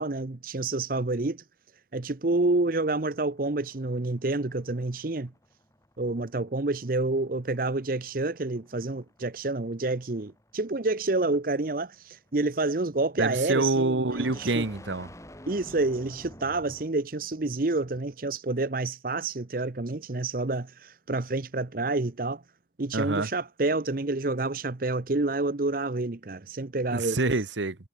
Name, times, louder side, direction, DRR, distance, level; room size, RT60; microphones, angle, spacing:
voice 1, 0.0-1.4 1.9-5.3 6.0-14.6 15.5-22.4 22.8-27.2, right 2 dB, 50° right, 0.8 m, -28 dB
sound 1, 2.5-17.1, left 1 dB, 15° left, 7.0 m, -52 dB
voice 2, 13.2-15.1 22.9-23.3 26.9-27.8, right 2 dB, 80° right, 1.3 m, -26 dB
head